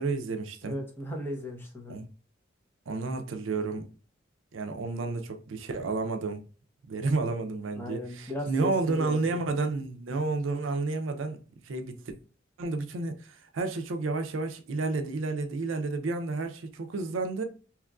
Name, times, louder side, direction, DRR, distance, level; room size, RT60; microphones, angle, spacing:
voice 1, 0.0-0.8 1.9-2.1 2.9-3.8 4.5-6.4 6.9-12.0 12.6-17.4, right 3 dB, 85° right, 0.4 m, -31 dB
voice 2, 0.6-2.0 7.8-9.2, left 1 dB, 10° left, 0.6 m, -36 dB
2.9 x 2.4 x 2.2 m
head